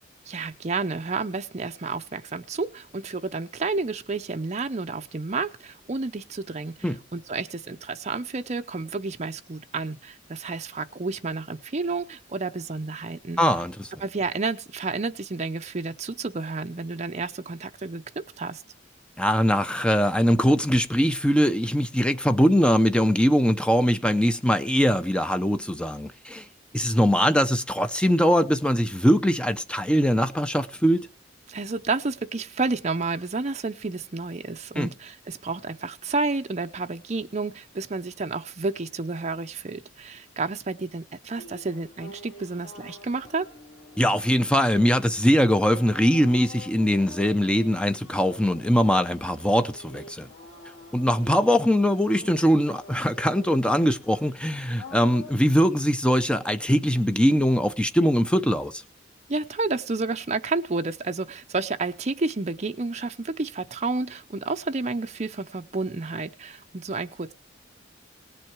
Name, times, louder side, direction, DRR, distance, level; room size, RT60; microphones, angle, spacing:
voice 1, 0.3-6.7 7.1-13.4 14.0-18.6 31.5-43.5 59.3-67.3, right 3 dB, 35° right, 0.7 m, -30 dB
voice 2, 13.4-13.9 19.2-26.5 26.7-31.0 34.8-34.9 44.0-50.3 50.9-58.8, equal, 5° left, 0.7 m, -22 dB
sound 1, 41.4-55.3, left 3 dB, 80° left, 3.2 m, -46 dB
18.5 x 7.5 x 4.7 m
head